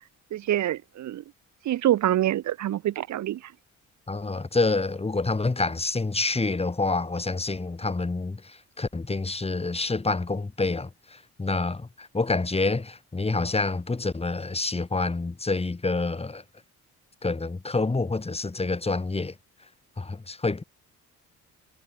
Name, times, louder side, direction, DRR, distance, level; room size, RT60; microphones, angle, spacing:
voice 1, 0.3-1.2 1.6-3.4, right 13 dB, 70° right, 1.4 m, -25 dB
voice 2, 4.1-16.4 17.2-19.3 20.0-20.6, left 3 dB, 20° left, 3.4 m, -27 dB
cardioid pair, 90°, 30 cm